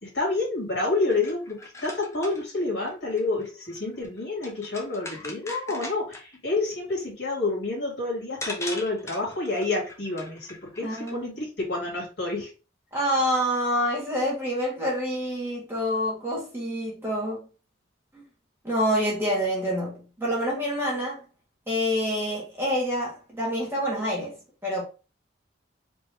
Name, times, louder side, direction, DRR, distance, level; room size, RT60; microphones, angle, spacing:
voice 1, 0.0-12.5, left 3 dB, 60° left, 2.4 m, -29 dB
sound 1, 0.9-6.4 7.9-8.0 8.4-11.1, left 2 dB, 15° left, 0.6 m, -40 dB
voice 2, 10.8-11.3 12.9-17.5 18.1-18.2 18.6-21.2 21.7-24.3 24.6-24.8, equal, 10° right, 1.5 m, -27 dB
4.5 x 3.0 x 3.4 m
head